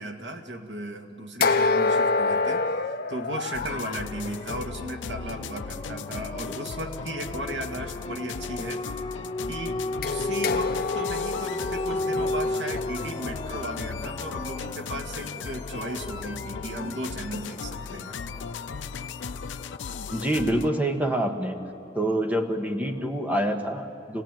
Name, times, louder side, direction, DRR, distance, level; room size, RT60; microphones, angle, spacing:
voice 1, 0.0-8.9 9.5-18.2, right 1 dB, 75° right, 3 dB, 2.2 m, -36 dB
sound 1, 1.4-4.1 10.0-14.0, left 3 dB, 55° left, 0.8 m, -27 dB
sound 2, 3.5-20.7, left 5 dB, 90° left, 0.5 m, -37 dB
sound 3, 3.6-23.0, left 2 dB, 25° left, 0.7 m, -36 dB
voice 2, 20.1-21.6 21.9-24.2, right 1 dB, 10° right, 4 dB, 1.5 m, -26 dB
27.5 x 17.5 x 9.1 m, 2.8 s
head